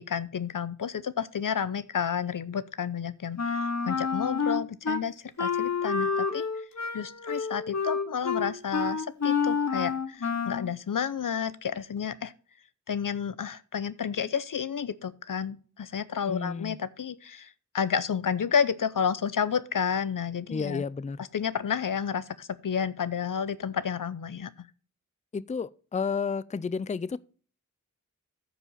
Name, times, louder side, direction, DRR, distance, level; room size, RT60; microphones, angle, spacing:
voice 1, 0.0-6.5 6.9-12.3 12.9-17.5 17.7-20.8 21.2-24.5, left 7 dB, 85° left, 0.6 m, -31 dB
Wind instrument woodwind instrument, 3.4-5.0 5.4-10.7, left 5 dB, 60° left, 0.9 m, -29 dB
voice 2, 16.3-16.8 20.5-21.2 25.3-27.2, left 5 dB, 25° left, 0.4 m, -31 dB
14.0 x 5.0 x 4.0 m
wide cardioid pair, 50°, 32 cm